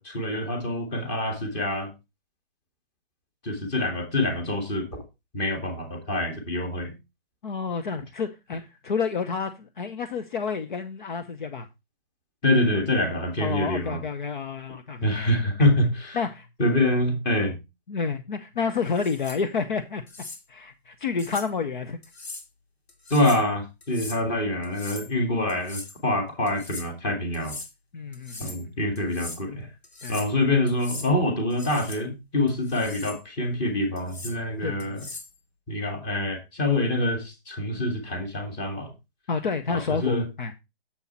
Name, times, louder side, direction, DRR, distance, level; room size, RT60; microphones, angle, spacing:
voice 1, 0.0-1.9 3.4-5.0 5.3-6.9 12.4-14.0 15.0-16.2 16.6-17.6 23.1-27.6 28.4-29.7 30.1-35.0 35.7-38.9 39.7-40.2, left 1 dB, 15° left, 2.0 m, -26 dB
voice 2, 7.4-11.7 13.4-15.3 15.6-15.7 16.1-16.5 17.9-20.0 20.5-22.0 23.9-24.0 27.9-28.7 30.0-30.2 34.6-35.1 39.3-40.5, left 5 dB, 50° left, 0.9 m, -30 dB
sound 1, 18.9-19.4 20.1-20.4 21.2-21.5 22.0-22.5 22.9-23.5 23.8-24.2 24.6-25.1 25.5-26.0 26.5-26.9 27.3-27.7 28.1-28.6 28.9-29.4 29.8-30.3 30.7-31.1 31.5-32.0 32.5-33.2 34.0-34.4 34.8-35.3, left 3 dB, 90° left, 2.4 m, -40 dB
7.3 x 6.8 x 4.2 m
hypercardioid pair, 155°, 31 cm